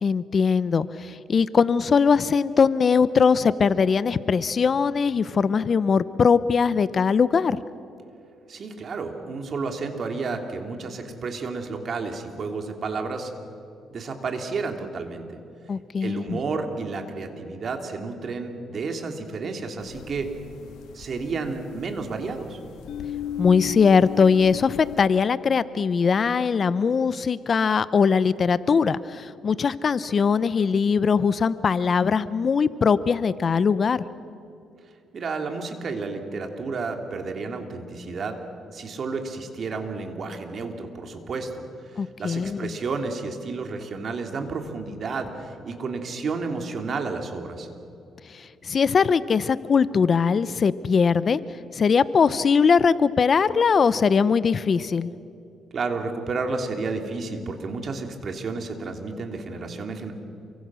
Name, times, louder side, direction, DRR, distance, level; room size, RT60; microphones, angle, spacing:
voice 1, 0.0-7.6 15.7-16.4 23.4-34.0 42.0-42.7 48.3-51.4 51.7-55.1, left 5 dB, 45° left, 16 dB, 0.7 m, -21 dB
voice 2, 8.5-13.3 13.9-15.4 16.0-20.3 20.9-22.6 35.1-38.4 38.7-41.6 41.9-47.7 55.7-60.1, right 4 dB, 50° right, 4 dB, 3.1 m, -31 dB
sound 1, 19.8-25.0, left 11 dB, 85° left, 2.7 m, -37 dB
28.5 x 24.0 x 6.3 m, 2.6 s
cardioid pair, 90°, 0 cm